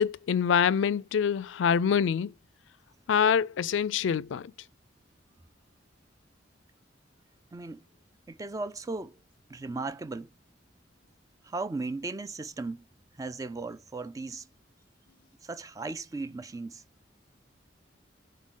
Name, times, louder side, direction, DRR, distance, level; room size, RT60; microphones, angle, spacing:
voice 1, 0.0-2.3 3.1-4.5, left 7 dB, 80° left, 0.4 m, -25 dB
voice 2, 7.5-7.8 8.3-9.1 9.5-10.3 11.5-12.8 13.2-14.4 15.4-16.8, right 3 dB, 20° right, 0.3 m, -36 dB
7.4 x 4.0 x 3.7 m
head